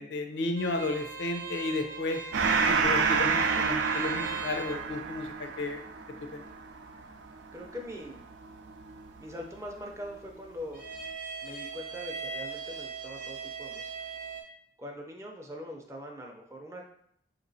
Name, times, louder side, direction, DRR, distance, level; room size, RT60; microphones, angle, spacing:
voice 1, 0.0-2.2 2.7-5.8 6.3-6.5, left 2 dB, 75° left, 5 dB, 0.5 m, -33 dB
sound 1, 0.6-14.4, right 5 dB, 50° right, 0.8 m, -41 dB
Gong, 2.3-9.3, right 5 dB, 80° right, 0.4 m, -29 dB
voice 2, 7.5-8.2 9.2-10.8 11.4-13.9 14.8-16.8, equal, 15° right, 1 dB, 0.4 m, -42 dB
4.0 x 2.9 x 2.7 m, 0.70 s
head